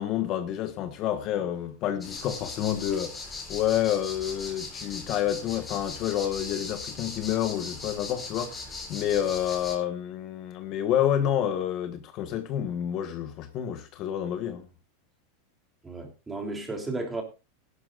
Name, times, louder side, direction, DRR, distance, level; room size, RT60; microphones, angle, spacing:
voice 1, 0.0-14.7, left 10 dB, 40° left, 1.4 m, -29 dB
sound 1, 2.0-9.8, left 3 dB, 15° left, 3.5 m, -39 dB
voice 2, 15.8-17.2, right 2 dB, 10° right, 3.3 m, -34 dB
18.5 x 11.5 x 2.5 m
supercardioid pair, 140°, 0 cm